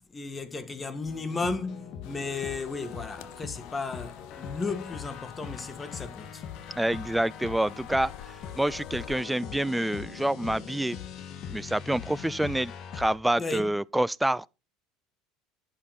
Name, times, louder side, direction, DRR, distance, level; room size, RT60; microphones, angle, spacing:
voice 1, 0.1-6.4 13.4-13.7, left 3 dB, 20° left, 1.7 m, -34 dB
sound 1, 1.1-13.1, left 8 dB, 50° left, 2.0 m, -41 dB
sound 2, 2.0-9.2, left 14 dB, 70° left, 0.8 m, -50 dB
voice 2, 6.8-8.1 8.5-11.0 11.5-14.5, right 1 dB, 5° right, 0.4 m, -27 dB
11.5 x 7.5 x 4.3 m
supercardioid pair, 95°, 0 cm